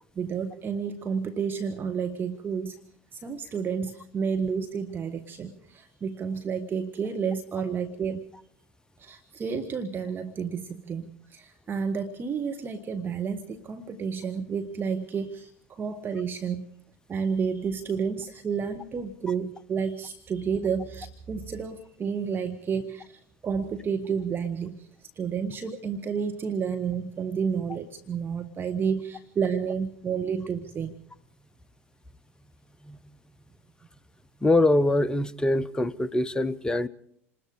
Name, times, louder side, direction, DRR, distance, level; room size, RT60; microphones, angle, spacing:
voice 1, 0.1-2.8 3.1-8.2 9.0-16.7 17.1-30.9, right 6 dB, 30° right, 1.5 m, -31 dB
voice 2, 34.4-36.9, left 2 dB, 10° left, 0.9 m, -23 dB
28.0 x 20.5 x 4.9 m
figure-of-eight pair, 75°, 7 cm